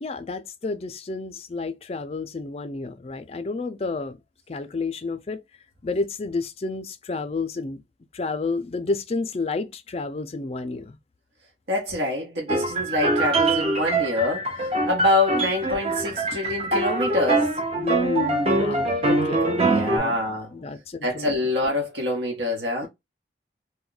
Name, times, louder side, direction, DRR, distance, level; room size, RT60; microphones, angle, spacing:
voice 1, 0.0-4.2 4.5-5.4 5.8-7.8 8.1-11.0 17.8-19.5 19.9-20.2 20.5-21.3, left 3 dB, 35° left, 0.4 m, -30 dB
voice 2, 11.7-17.5 19.4-20.5 21.0-22.9, left 2 dB, 80° right, 0.9 m, -25 dB
sound 1, 12.5-20.0, right 2 dB, 35° right, 0.6 m, -23 dB
2.3 x 2.1 x 3.7 m
head